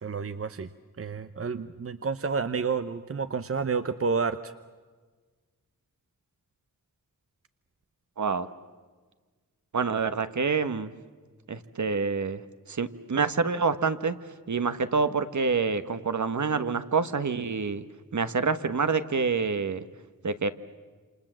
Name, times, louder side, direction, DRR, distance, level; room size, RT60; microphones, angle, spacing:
voice 1, 0.0-0.7 1.0-4.5, right 5 dB, 40° right, 11 dB, 0.8 m, -30 dB
voice 2, 8.2-8.5 9.7-10.9 11.5-12.4 12.7-14.2 14.5-17.8 18.1-19.8 20.2-20.5, right 5 dB, 60° right, 11 dB, 1.3 m, -27 dB
28.0 x 27.5 x 7.5 m, 1.4 s
wide cardioid pair, 75°, 33 cm